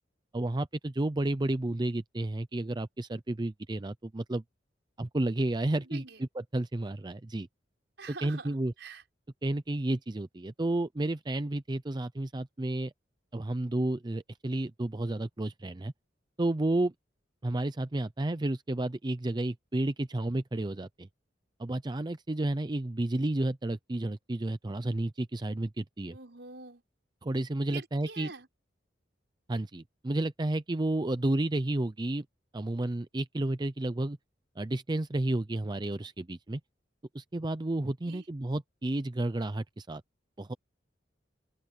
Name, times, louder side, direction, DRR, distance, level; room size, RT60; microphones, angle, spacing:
voice 1, 0.3-4.4 5.0-6.0 6.5-7.5 8.2-8.7 9.4-12.9 13.3-15.9 16.4-16.9 17.4-21.1 21.6-26.1 27.2-28.3 29.5-32.2 32.5-34.2 34.6-36.6 37.1-40.0 40.4-40.5, right 1 dB, 25° right, 0.5 m, -31 dB
voice 2, 5.8-6.2 8.0-9.0 26.1-26.8 27.7-28.5 38.0-38.3, right 4 dB, 65° right, 6.4 m, -46 dB
open air
head